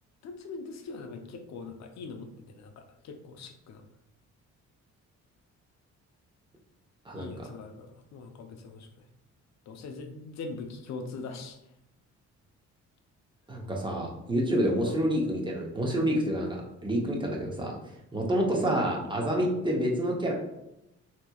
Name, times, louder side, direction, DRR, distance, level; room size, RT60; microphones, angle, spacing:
voice 1, 0.2-3.8 7.1-8.9 9.7-11.6 14.8-15.0 18.4-18.6, left 4 dB, 65° left, 5 dB, 0.6 m, -42 dB
voice 2, 13.5-17.7 18.1-20.3, equal, 15° right, -1 dB, 0.8 m, -28 dB
3.3 x 2.9 x 2.3 m, 0.88 s
cardioid pair, 90°, 30 cm